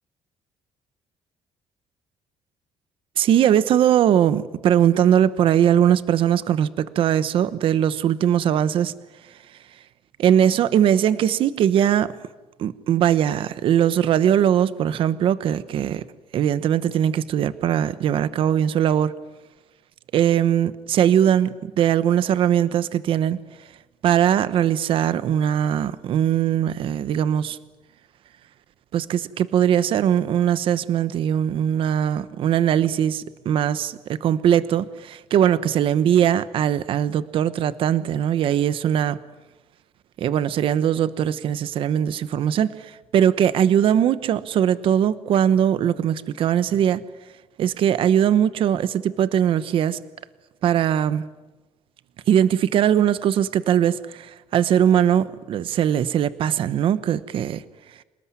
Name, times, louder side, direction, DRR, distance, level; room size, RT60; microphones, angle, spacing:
voice 1, 3.2-8.9 10.2-12.1 12.6-16.0 16.3-19.1 20.1-23.4 24.0-27.6 28.9-39.2 40.2-47.0 47.6-50.0 50.6-51.3 52.3-57.6, right 9 dB, 60° right, 1.0 m, -20 dB
28.0 x 19.5 x 9.7 m
cardioid pair, 135°, 10 cm